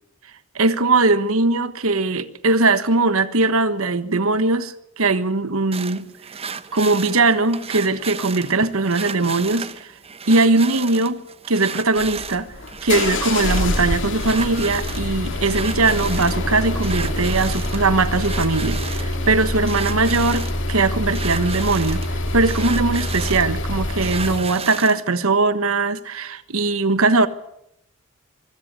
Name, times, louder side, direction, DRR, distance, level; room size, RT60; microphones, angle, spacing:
voice 1, 0.5-6.1 6.7-9.9 10.3-11.2 11.5-12.5 12.8-22.0 22.3-27.3, right 3 dB, 70° right, 1.3 m, -20 dB
sound 1, 5.7-25.1, right 6 dB, 30° right, 0.9 m, -34 dB
sound 2, 12.0-24.5, left 1 dB, 60° left, 2.7 m, -25 dB
24.5 x 16.5 x 9.4 m
head